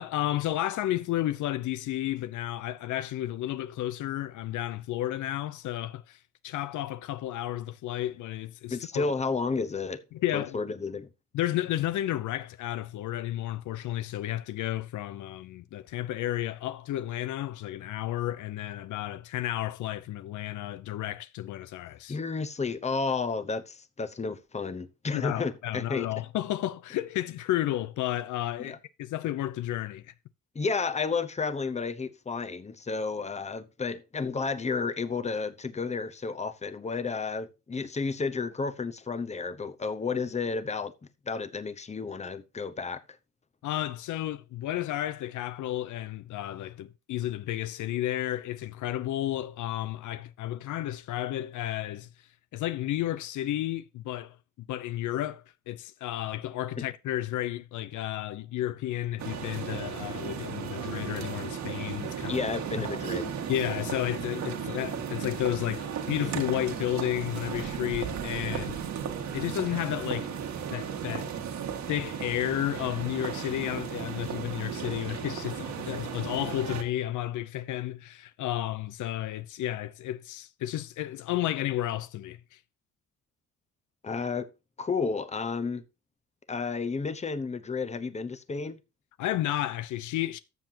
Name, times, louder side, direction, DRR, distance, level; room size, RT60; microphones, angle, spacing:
voice 1, 0.0-9.1 10.1-10.6 11.3-22.2 25.1-30.1 43.6-52.1 52.5-54.4 54.7-62.5 62.8-62.9 63.5-68.8 69.3-70.3 70.7-71.3 71.9-82.6 89.2-90.4, left 13 dB, 75° left, 0.6 m, -32 dB
voice 2, 8.7-10.0 10.3-11.1 22.1-26.1 28.6-28.8 30.5-40.9 41.3-43.0 56.8-56.9 62.3-63.3 84.0-84.5 84.8-85.8 86.5-88.8, left 4 dB, 20° left, 0.9 m, -32 dB
sound 1, 59.2-76.8, right 7 dB, 65° right, 1.8 m, -35 dB
13.5 x 7.0 x 2.8 m
cardioid pair, 90°, 30 cm